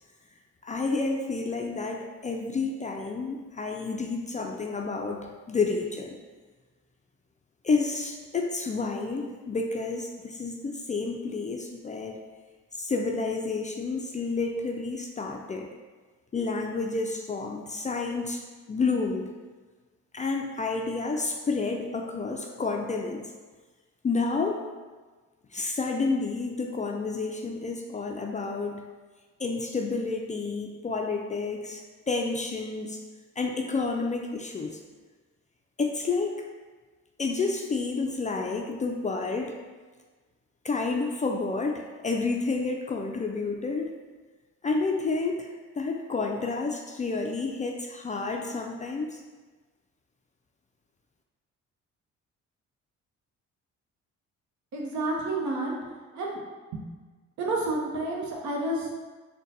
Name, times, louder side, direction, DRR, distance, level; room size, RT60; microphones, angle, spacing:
voice 1, 0.6-6.2 7.6-12.2 12.7-15.7 16.3-18.4 18.7-19.3 20.1-23.2 24.0-24.6 25.5-28.8 29.4-31.8 32.1-33.0 33.4-34.8 35.8-36.4 37.2-39.5 40.6-43.9 44.6-45.5 45.8-49.2, left 3 dB, 25° left, 2 dB, 0.3 m, -30 dB
voice 2, 54.7-55.8 56.1-56.4 56.7-56.9 57.4-58.9, right 2 dB, 70° right, -2 dB, 0.8 m, -30 dB
3.8 x 2.2 x 4.0 m, 1.3 s
cardioid pair, 90°, 30 cm